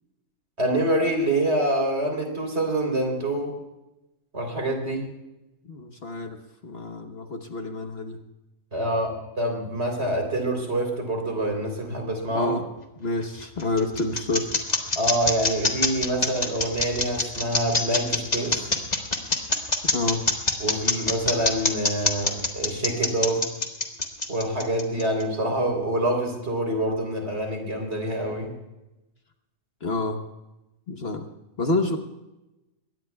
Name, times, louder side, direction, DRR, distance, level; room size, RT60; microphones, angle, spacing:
voice 1, 0.6-3.5 4.3-5.1 8.7-12.5 15.0-18.7 20.6-23.4 24.3-28.5, right 1 dB, 50° right, 3 dB, 3.9 m, -26 dB
voice 2, 5.6-8.2 12.3-12.7 13.0-14.6 19.9-20.3 29.8-30.2 30.9-31.3 31.6-32.0, left 2 dB, 50° left, 5 dB, 1.3 m, -28 dB
sound 1, 13.2-25.2, left 2 dB, 30° left, 1.7 m, -24 dB
22.0 x 18.5 x 2.3 m, 0.96 s
omnidirectional pair, 1.4 m